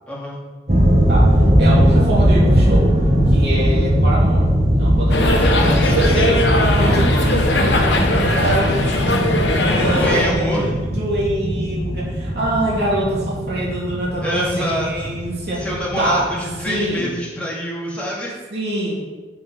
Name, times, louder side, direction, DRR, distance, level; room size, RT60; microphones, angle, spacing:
voice 1, 0.1-0.4 5.2-6.4 9.8-10.8 14.2-15.1 15.6-18.3, equal, 5° left, -5 dB, 2.2 m, -26 dB
sound 1, 0.7-16.9, equal, 35° right, 1.6 m, -19 dB
voice 2, 1.1-2.9 3.3-4.5 4.8-6.4 6.7-15.7 16.0-16.3 16.6-17.1 18.5-18.9, right 1 dB, 60° right, -6 dB, 3.1 m, -24 dB
sound 2, 5.1-10.3, left 2 dB, 65° left, 1.2 m, -20 dB
7.0 x 6.4 x 5.8 m, 1.3 s
head